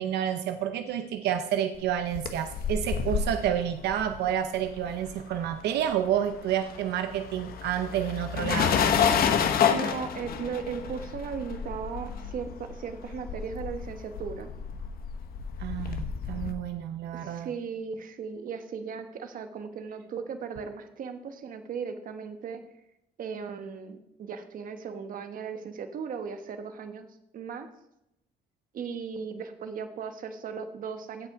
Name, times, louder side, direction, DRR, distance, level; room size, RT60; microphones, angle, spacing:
voice 1, 0.0-8.8 15.6-17.5, right 10 dB, 90° right, 8 dB, 0.7 m, -29 dB
sound 1, 1.9-5.5 5.8-16.5, left 7 dB, 65° left, 1.1 m, -29 dB
voice 2, 9.7-14.5 17.1-22.6 23.2-27.1 27.3-27.7 28.7-31.3, right 6 dB, 55° right, 8 dB, 1.2 m, -37 dB
16.0 x 5.7 x 4.7 m, 0.84 s
cardioid pair, 140°, 17 cm